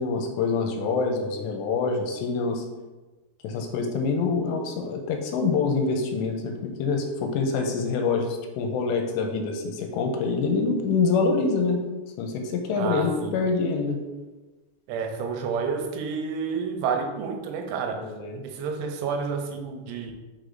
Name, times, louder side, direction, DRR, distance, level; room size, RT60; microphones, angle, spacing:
voice 1, 0.0-2.6 3.4-11.8 12.2-14.0 17.9-18.4, left 4 dB, 85° left, 3 dB, 2.7 m, -26 dB
voice 2, 12.8-13.4 14.9-18.1 18.4-20.2, right 5 dB, 85° right, 3 dB, 3.0 m, -30 dB
6.6 x 5.9 x 2.6 m, 1.2 s
omnidirectional pair, 5.2 m